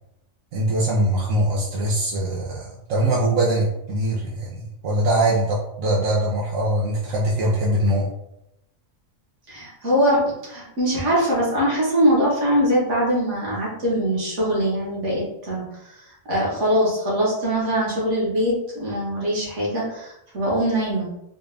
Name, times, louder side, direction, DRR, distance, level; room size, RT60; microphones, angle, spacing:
voice 1, 0.5-8.1, right 1 dB, 85° right, -5 dB, 1.1 m, -22 dB
voice 2, 9.5-15.6 16.3-21.1, equal, 65° right, -5 dB, 1.7 m, -22 dB
4.2 x 2.3 x 3.3 m, 0.84 s
omnidirectional pair, 1.4 m